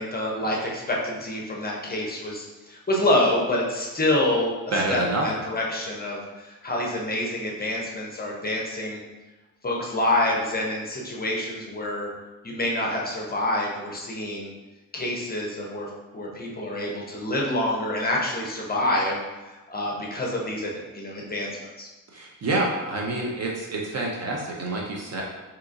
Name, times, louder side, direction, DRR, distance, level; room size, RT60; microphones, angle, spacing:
voice 1, 0.0-4.5 4.9-9.0 9.6-12.1 12.4-14.5 14.9-19.2 19.5-21.5 21.8-21.9, left 1 dB, 25° left, -2 dB, 0.5 m, -27 dB
voice 2, 4.7-5.4 22.1-25.2, right 2 dB, 50° right, -2 dB, 0.5 m, -27 dB
3.8 x 2.8 x 2.5 m, 1.1 s
wide cardioid pair, 135°, 35 cm